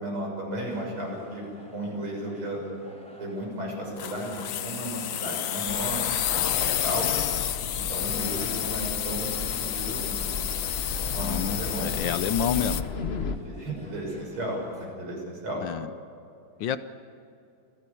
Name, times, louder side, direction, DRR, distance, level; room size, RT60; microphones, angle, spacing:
voice 1, 0.0-2.6 3.2-7.1 7.7-10.2 10.8-12.0 13.3-15.6, right 1 dB, 80° right, -1 dB, 7.4 m, -34 dB
sound 1, 0.6-14.9, equal, 5° left, 4.6 m, -50 dB
sound 2, 4.0-12.8, left 10 dB, 85° left, 0.7 m, -30 dB
sound 3, 5.7-13.4, left 4 dB, 40° left, 1.0 m, -35 dB
voice 2, 11.2-12.8 15.6-15.9 16.6-16.8, left 8 dB, 70° left, 13 dB, 1.3 m, -29 dB
26.0 x 16.5 x 8.5 m, 2.5 s
omnidirectional pair, 2.3 m